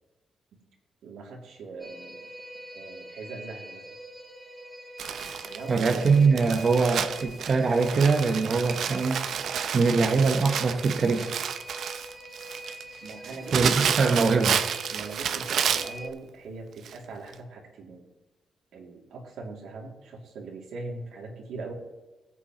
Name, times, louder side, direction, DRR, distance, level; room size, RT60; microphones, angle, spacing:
voice 1, 1.0-2.2 2.7-3.8 5.4-6.1 13.0-14.0 14.9-18.0 18.7-21.7, right 3 dB, 85° right, -1 dB, 2.7 m, -41 dB
sound 1, 1.8-16.1, equal, 15° right, 1.7 m, -44 dB
Crumpling crinkling, 5.0-16.0 16.8-17.0 17.3-17.4, right 8 dB, 65° right, 0.6 m, -30 dB
voice 2, 5.7-9.3 9.7-11.3 13.5-14.6, right 4 dB, 40° right, 3 dB, 1.1 m, -23 dB
19.5 x 8.5 x 3.1 m, 1.2 s
cardioid pair, 150°, 0 cm